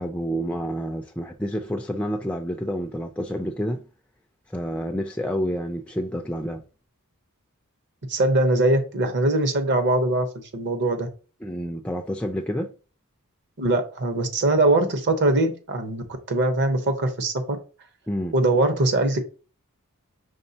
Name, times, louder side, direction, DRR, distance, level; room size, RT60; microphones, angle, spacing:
voice 1, 0.0-3.8 4.5-6.6 11.4-12.7 18.1-18.3, equal, 5° left, 0.3 m, -29 dB
voice 2, 8.1-11.1 13.6-17.6 18.3-19.2, right 2 dB, 50° right, 0.9 m, -22 dB
5.3 x 3.6 x 2.7 m
head